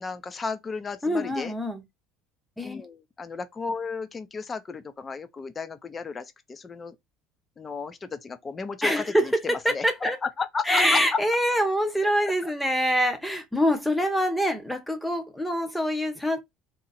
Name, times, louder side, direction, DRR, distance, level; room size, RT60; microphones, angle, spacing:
voice 1, 0.0-1.5 2.6-6.9 7.6-9.8 10.2-11.2 12.2-12.5, left 4 dB, 20° left, 0.5 m, -33 dB
voice 2, 1.0-1.8 2.6-2.8 8.8-10.2 10.7-16.4, equal, 5° left, 0.9 m, -25 dB
3.9 x 2.8 x 4.1 m
cardioid pair, 150°, 0 cm